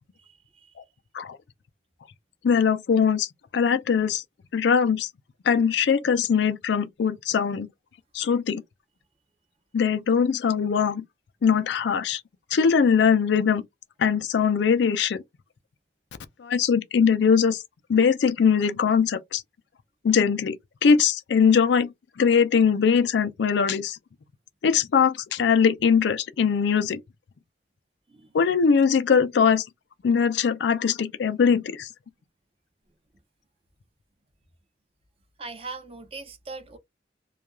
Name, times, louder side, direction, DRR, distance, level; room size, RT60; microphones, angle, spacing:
voice 1, 0.2-0.7 28.1-28.3 35.4-36.8, right 3 dB, 30° right, 0.5 m, -40 dB
voice 2, 2.4-3.3 3.5-4.2 4.5-5.1 5.4-7.7 8.1-8.6 9.7-11.0 11.4-12.2 12.5-13.6 14.0-15.2 16.4-17.6 17.9-19.4 20.0-20.6 20.8-24.0 24.6-27.0 28.3-29.7 30.0-31.9, left 6 dB, 65° left, 0.4 m, -21 dB
2.3 x 2.3 x 2.9 m
head